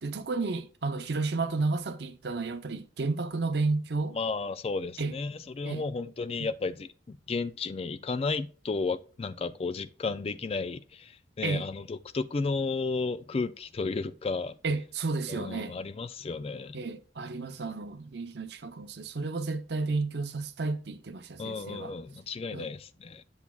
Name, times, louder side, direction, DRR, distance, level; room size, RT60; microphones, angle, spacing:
voice 1, 0.0-4.2 5.0-5.1 5.6-5.8 6.4-6.5 11.4-11.7 14.6-15.8 16.7-21.9 22.5-22.7, right 3 dB, 60° right, 0.6 m, -32 dB
voice 2, 4.1-14.6 15.3-16.8 21.4-23.2, left 4 dB, 30° left, 0.3 m, -33 dB
8.1 x 7.1 x 2.3 m
head